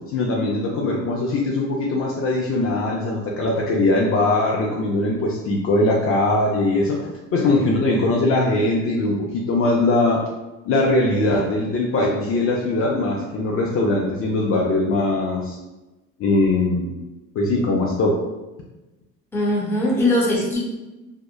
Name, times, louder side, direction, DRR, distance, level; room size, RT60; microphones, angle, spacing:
voice 1, 0.1-7.1 7.3-10.2 10.7-15.6 16.2-16.9 17.4-18.2, left 2 dB, 45° left, -2 dB, 0.4 m, -21 dB
voice 2, 19.3-20.6, left 1 dB, 5° left, -5 dB, 0.8 m, -20 dB
2.7 x 2.0 x 2.2 m, 1.1 s
supercardioid pair, 95°, 32 cm